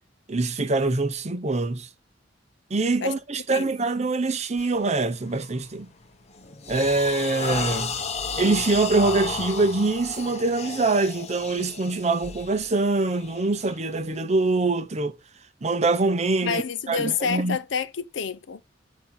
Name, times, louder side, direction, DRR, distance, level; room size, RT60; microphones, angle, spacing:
voice 1, 0.3-1.9 2.7-5.9 6.7-7.9 8.4-15.1 15.6-16.6 16.9-17.6, right 3 dB, 40° right, 0.7 m, -24 dB
sound 1, 4.6-4.8 5.3-5.6 6.1-14.2, left 4 dB, 35° left, 0.7 m, -34 dB
voice 2, 16.4-18.6, left 6 dB, 85° left, 0.6 m, -28 dB
8.3 x 2.8 x 5.9 m
head